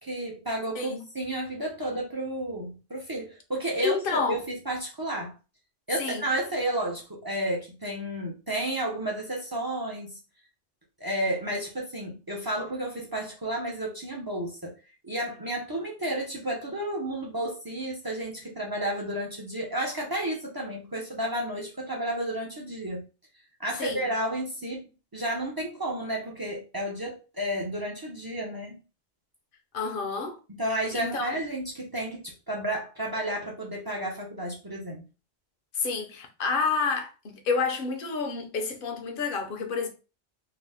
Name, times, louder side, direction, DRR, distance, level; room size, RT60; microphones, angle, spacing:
voice 1, 0.0-5.3 5.9-10.2 11.0-14.7 15.0-23.0 23.6-28.8 30.6-35.0, right 1 dB, 30° right, 0.4 m, -32 dB
voice 2, 3.8-4.4 6.0-6.2 23.8-24.0 29.7-30.4 30.9-31.3 35.7-39.9, left 4 dB, 60° left, 0.7 m, -29 dB
2.8 x 2.0 x 3.3 m
omnidirectional pair, 1.2 m